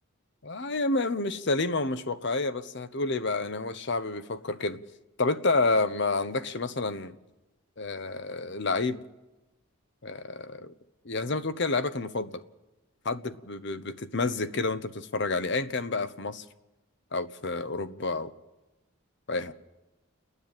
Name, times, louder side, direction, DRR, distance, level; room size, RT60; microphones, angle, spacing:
voice 1, 0.4-4.8 5.2-7.1 7.8-9.0 10.0-10.7 11.0-12.4 13.0-16.4 17.1-18.3 19.3-19.5, left 3 dB, 55° left, 0.9 m, -29 dB
29.5 x 9.9 x 9.0 m
head